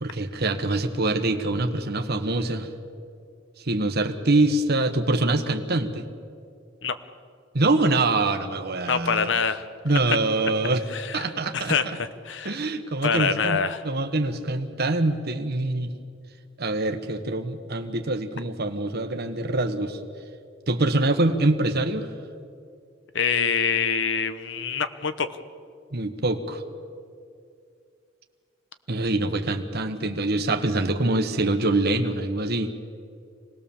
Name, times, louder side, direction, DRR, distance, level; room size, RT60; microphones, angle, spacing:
voice 1, 0.0-2.7 3.6-6.1 7.5-9.3 9.8-10.8 11.1-11.8 12.4-15.9 16.6-20.0 20.7-22.1 25.9-26.6 28.9-32.7, right 2 dB, 55° right, 6 dB, 1.3 m, -24 dB
voice 2, 8.9-9.6 10.1-10.2 10.9-11.3 11.5-12.7 13.0-13.8 23.1-25.3, left 6 dB, 65° left, 11 dB, 1.0 m, -25 dB
25.5 x 19.5 x 7.2 m, 2.4 s
head